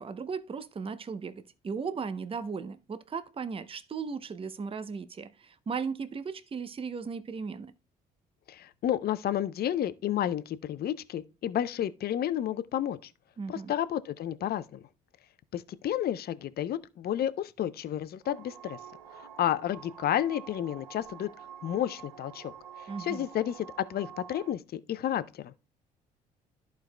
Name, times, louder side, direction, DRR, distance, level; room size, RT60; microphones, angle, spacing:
voice 1, 0.0-7.7 13.4-13.7 22.9-23.3, right 5 dB, 25° right, 0.7 m, -36 dB
voice 2, 8.5-13.1 13.5-14.8 15.5-18.8 19.1-21.3 21.6-22.5 23.0-25.5, left 11 dB, 50° left, 0.6 m, -31 dB
sound 1, 18.2-24.5, right 8 dB, 90° right, 0.5 m, -48 dB
13.5 x 4.6 x 2.2 m
hypercardioid pair, 50°, 21 cm